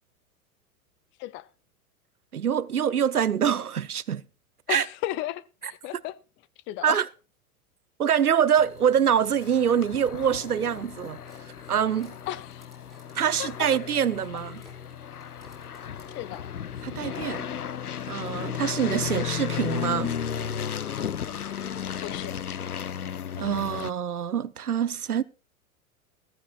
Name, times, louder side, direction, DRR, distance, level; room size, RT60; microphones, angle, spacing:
voice 1, 2.3-4.2 4.7-4.8 6.8-7.0 8.0-11.2 11.7-12.2 13.1-14.6 16.8-17.5 18.1-20.2 23.4-25.2, right 8 dB, 80° right, 0.8 m, -25 dB
voice 2, 4.7-6.2 6.7-7.0 12.3-12.7 13.4-13.5 16.2-16.5 22.0-22.4, left 15 dB, 25° left, 0.6 m, -34 dB
sound 1, 8.6-23.9, left 8 dB, 85° left, 0.7 m, -34 dB
sound 2, 11.2-19.2 19.8-19.9 20.2-20.5 21.2-21.3, right 1 dB, ahead, 6.8 m, -58 dB
15.5 x 14.5 x 2.4 m
figure-of-eight pair, 95°, 44 cm